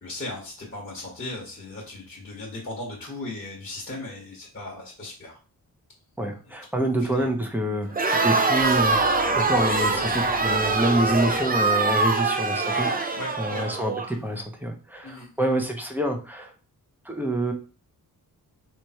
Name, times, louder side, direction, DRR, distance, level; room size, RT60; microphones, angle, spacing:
voice 1, 0.0-5.4 7.1-7.3 13.2-13.8 15.0-15.3, left 2 dB, 35° left, -4 dB, 1.6 m, -37 dB
voice 2, 6.2-12.9 13.4-16.5 17.0-17.5, right 1 dB, 5° right, 2 dB, 1.0 m, -27 dB
Crowd, 7.9-14.1, right 3 dB, 25° right, 0.6 m, -23 dB
sound 1, 8.6-11.8, left 4 dB, 60° left, 1.0 m, -41 dB
3.3 x 3.2 x 4.4 m, 0.36 s
cardioid pair, 85°, 36 cm